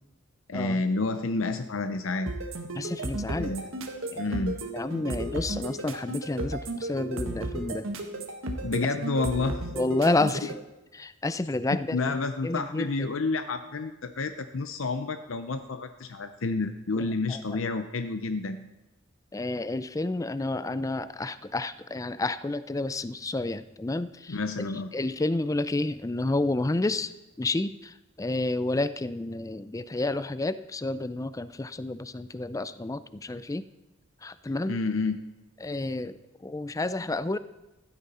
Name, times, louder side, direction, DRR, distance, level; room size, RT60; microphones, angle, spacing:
voice 1, 0.5-2.3 3.4-3.7 4.2-4.6 8.6-9.6 11.9-18.7 24.3-24.9 34.7-35.2, left 3 dB, 70° left, 9 dB, 0.7 m, -29 dB
sound 1, 2.3-10.5, right 2 dB, 75° right, 1.6 m, -34 dB
voice 2, 2.8-3.5 4.1-4.3 4.7-7.9 9.7-10.6 10.9-12.0 12.4-12.9 16.9-17.6 19.3-24.4 24.9-27.1 27.4-33.6 34.2-34.8 35.6-37.4, left 2 dB, 15° left, 14 dB, 0.4 m, -30 dB
15.5 x 12.5 x 4.2 m, 1.0 s
head